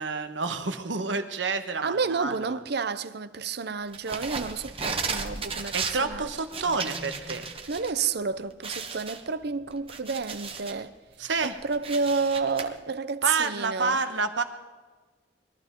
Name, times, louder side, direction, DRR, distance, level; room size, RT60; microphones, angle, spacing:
voice 1, 0.0-2.6 5.7-7.5 11.2-11.6 13.2-14.4, right 4 dB, 85° right, 1.3 m, -29 dB
voice 2, 1.8-6.3 7.7-10.9 11.4-14.0, right 5 dB, 60° right, 0.7 m, -30 dB
sound 1, 3.9-7.9 8.2-8.3 8.6-10.8 11.3-12.6, right 5 dB, 30° right, 1.3 m, -35 dB
22.0 x 13.5 x 3.8 m
head